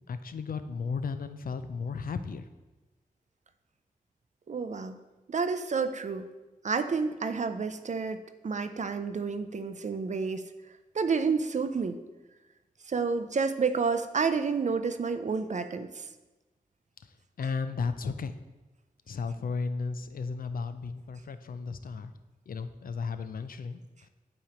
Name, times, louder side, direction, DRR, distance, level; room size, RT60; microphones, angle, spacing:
voice 1, 0.1-2.5 17.0-18.3 19.1-22.1 22.5-24.1, left 5 dB, 75° left, 11 dB, 0.4 m, -34 dB
voice 2, 4.5-5.0 5.3-6.3 6.6-8.2 8.4-10.5 10.9-12.0 12.9-16.1, right 5 dB, 55° right, 9 dB, 0.4 m, -29 dB
8.4 x 3.0 x 5.0 m, 1.1 s
wide cardioid pair, 65°, 15 cm